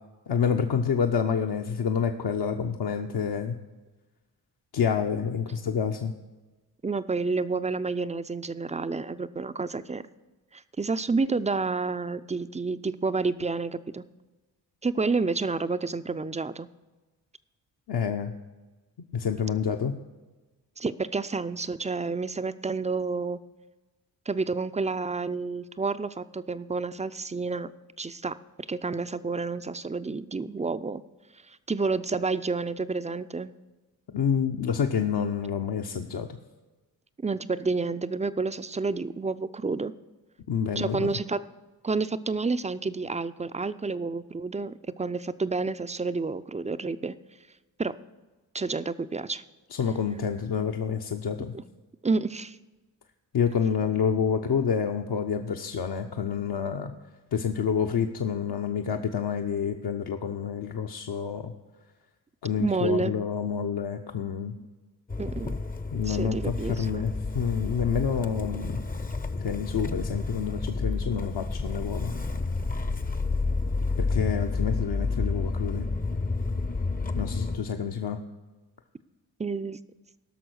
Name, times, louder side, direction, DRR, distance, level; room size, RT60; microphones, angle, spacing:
voice 1, 0.3-3.6 4.7-6.1 17.9-18.3 19.1-20.0 34.1-36.3 40.5-41.2 49.7-51.5 53.3-56.9 57.3-61.5 62.4-64.5 65.9-68.8 69.4-72.1 74.0-75.9 77.2-78.2, left 7 dB, 55° left, 3 dB, 0.9 m, -28 dB
voice 2, 6.8-10.0 10.5-14.0 14.8-16.7 20.8-23.4 24.3-27.7 28.0-28.4 28.7-31.0 31.5-33.5 37.2-39.9 40.8-41.4 41.8-47.1 47.8-48.0 48.5-49.4 51.5-51.6 52.0-52.6 62.6-63.1 65.2-65.5 66.1-67.1 79.4-79.8, right 4 dB, 15° right, 12 dB, 0.5 m, -29 dB
Motor vehicle (road) / Engine starting, 65.1-77.6, left 3 dB, 20° left, 0.7 m, -30 dB
16.0 x 6.2 x 6.3 m, 1.2 s
hypercardioid pair, 40°, 47 cm